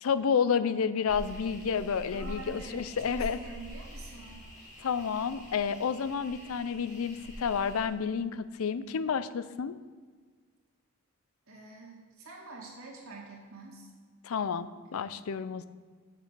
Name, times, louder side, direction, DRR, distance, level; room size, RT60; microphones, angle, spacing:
voice 1, 0.0-3.4 4.8-9.8 14.2-15.7, left 6 dB, 85° left, 14 dB, 0.5 m, -30 dB
sound 1, 1.1-7.9, equal, 35° left, 2.5 m, -45 dB
voice 2, 2.1-4.5 11.5-13.9, right 3 dB, 85° right, -2 dB, 2.2 m, -46 dB
7.5 x 6.8 x 6.7 m, 1.5 s
head